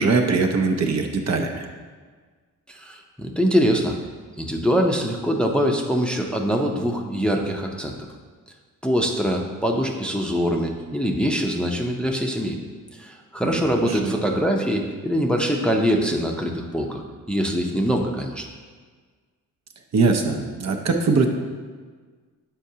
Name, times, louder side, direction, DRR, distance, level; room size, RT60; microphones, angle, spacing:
voice 1, 0.0-1.6 13.4-14.2 19.9-21.3, right 4 dB, 50° right, 3 dB, 0.6 m, -22 dB
voice 2, 2.7-4.0 4.4-7.9 8.8-12.6 12.9-18.5, equal, 5° left, 1 dB, 0.5 m, -23 dB
7.6 x 4.5 x 2.8 m, 1.5 s
cardioid pair, 75°, 34 cm